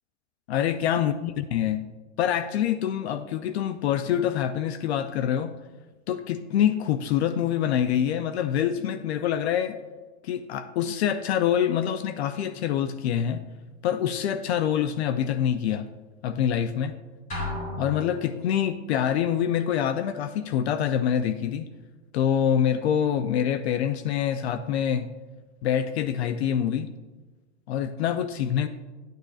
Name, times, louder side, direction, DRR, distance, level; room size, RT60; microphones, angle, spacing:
voice 1, 0.5-1.8 2.2-5.5 6.1-9.8 10.2-13.4 13.8-15.8 16.2-16.9 17.8-21.7 22.1-25.1 25.6-26.9 27.7-28.7, left 9 dB, 55° left, 11 dB, 0.5 m, -25 dB
sound 1, 17.3-18.8, left 1 dB, 20° left, 2.6 m, -34 dB
11.0 x 9.2 x 2.4 m, 1.3 s
supercardioid pair, 170°, 39 cm